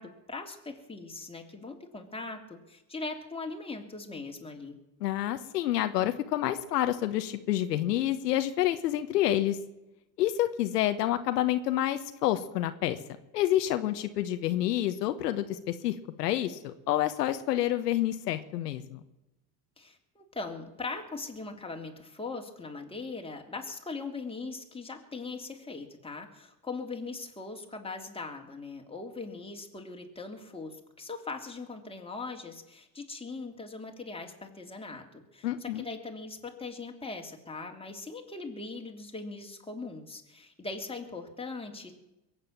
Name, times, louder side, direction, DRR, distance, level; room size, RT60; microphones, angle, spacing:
voice 1, 0.0-4.8 19.8-41.9, left 3 dB, 10° left, 2 dB, 3.2 m, -40 dB
voice 2, 5.0-9.6 10.2-13.0 13.3-19.0 35.4-35.9, left 13 dB, 85° left, 9 dB, 1.2 m, -28 dB
22.0 x 8.8 x 7.4 m, 0.96 s
hypercardioid pair, 80°, 47 cm